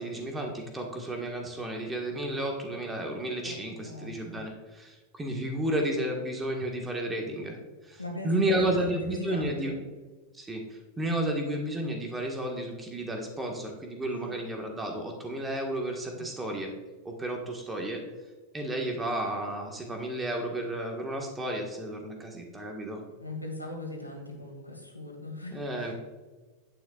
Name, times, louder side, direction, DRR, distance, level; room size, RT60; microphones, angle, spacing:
voice 1, 0.0-7.6 7.8-9.7 10.3-16.7 17.1-18.0 18.5-23.0 25.5-25.9, right 1 dB, 15° right, 2 dB, 1.6 m, -32 dB
voice 2, 3.8-4.4 8.0-9.8 14.1-14.4 16.1-16.2 23.2-25.9, left 1 dB, 85° left, 1 dB, 2.3 m, -39 dB
10.0 x 9.3 x 2.5 m, 1.3 s
figure-of-eight pair, 90°, 0 cm